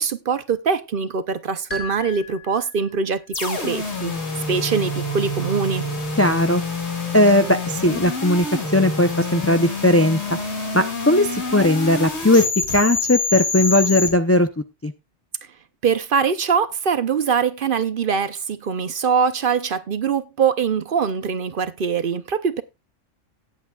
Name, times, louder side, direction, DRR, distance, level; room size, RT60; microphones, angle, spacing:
voice 1, 0.0-4.1 4.5-5.8 15.8-22.6, right 6 dB, 50° right, 0.8 m, -23 dB
sound 1, 1.7-3.3, left 2 dB, 40° left, 4.5 m, -36 dB
sound 2, 3.3-14.1, left 2 dB, 60° left, 2.4 m, -27 dB
voice 2, 6.2-6.6 7.1-8.5 8.7-10.2 10.7-12.5 12.7-14.5 14.8-14.9, left 1 dB, 20° left, 0.3 m, -17 dB
18.0 x 8.5 x 2.3 m
omnidirectional pair, 1.3 m